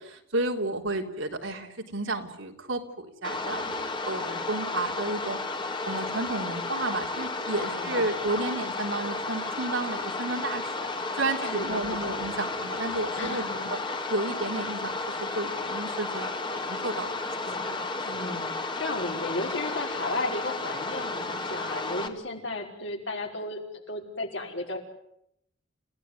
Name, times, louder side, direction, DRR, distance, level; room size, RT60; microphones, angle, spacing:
voice 1, 0.0-5.4 5.9-10.9 11.1-13.4 13.7-13.8 14.1-17.1, right 2 dB, 80° right, 3 dB, 3.6 m, -32 dB
sound 1, 3.2-22.1, left 3 dB, 25° left, 2.2 m, -33 dB
voice 2, 7.7-8.2 11.4-12.2 13.1-14.0 17.4-24.8, left 2 dB, 65° left, 2 dB, 5.4 m, -35 dB
29.5 x 17.0 x 9.7 m, 0.77 s
head